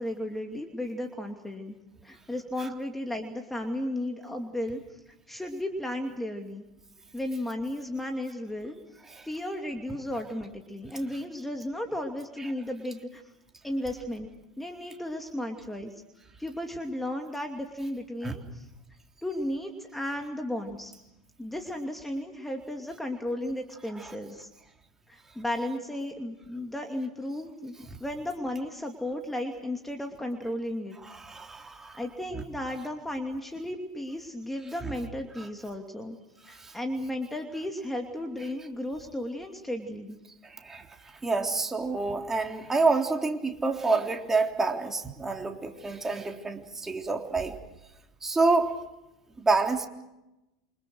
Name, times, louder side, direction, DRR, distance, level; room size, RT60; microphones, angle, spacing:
voice 1, 0.0-1.7 2.0-6.6 7.1-8.8 9.2-13.2 13.6-14.3 14.6-15.9 16.4-18.7 19.2-20.9 21.4-24.5 25.1-31.0 32.0-36.2 36.4-40.2, left 1 dB, 5° left, 3 dB, 2.7 m, -34 dB
voice 2, 31.0-32.0 32.3-32.4 34.8-34.9 35.4-35.5 36.5-36.8 40.4-40.9 41.2-47.6 48.2-48.7 49.4-49.9, right 3 dB, 15° right, 3 dB, 3.5 m, -28 dB
28.0 x 25.5 x 6.4 m, 0.92 s
hypercardioid pair, 85°, 3 cm